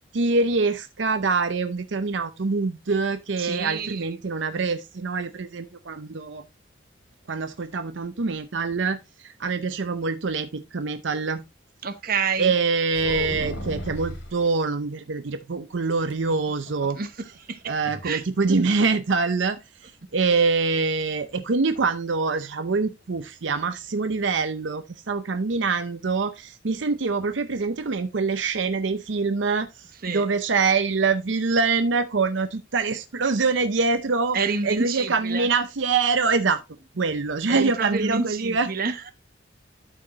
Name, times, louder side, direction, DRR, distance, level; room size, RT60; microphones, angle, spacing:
voice 1, 0.1-6.4 7.3-11.4 12.4-17.0 17.7-19.6 19.8-34.4 34.6-36.6 37.0-38.7, right 4 dB, 80° right, 0.7 m, -25 dB
voice 2, 3.4-4.1 11.8-12.5 16.9-17.1 17.5-17.6 18.0-18.2 18.5-18.6 30.0-30.2 34.3-35.5 37.5-39.1, right 4 dB, 50° right, 1.0 m, -28 dB
sound 1, 12.9-14.4 16.1-17.1 17.3-17.4 17.8-18.1, left 1 dB, 70° left, 3.0 m, -34 dB
12.5 x 4.7 x 3.0 m
head